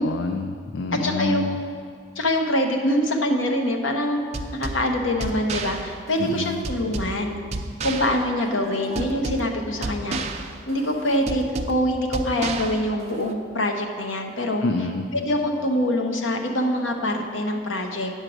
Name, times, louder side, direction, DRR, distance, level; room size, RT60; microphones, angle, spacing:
voice 1, 0.0-1.6 6.2-6.6 14.6-15.0, left 3 dB, 65° left, 6 dB, 0.5 m, -27 dB
voice 2, 0.9-1.6 2.2-4.2 4.5-7.5 7.8-10.2 10.7-14.6 15.1-18.1, left 1 dB, 85° left, 3 dB, 0.9 m, -24 dB
sound 1, 4.3-13.3, right 2 dB, 35° right, 0.5 m, -32 dB
8.9 x 6.4 x 6.1 m, 2.2 s
head